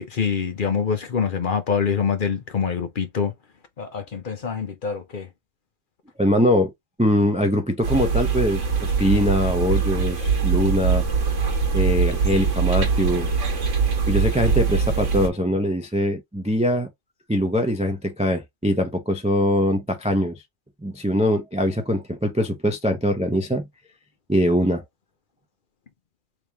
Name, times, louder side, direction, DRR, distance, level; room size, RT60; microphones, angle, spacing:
voice 1, 0.0-3.3 3.8-5.3, left 6 dB, 50° left, 0.8 m, -25 dB
voice 2, 6.2-6.7 7.0-11.1 11.7-13.3 14.1-16.9 17.3-20.3 20.8-23.7 24.3-24.8, equal, 10° right, 0.3 m, -22 dB
sound 1, 7.8-15.3, right 5 dB, 80° right, 1.3 m, -22 dB
3.4 x 2.9 x 3.4 m
omnidirectional pair, 1.3 m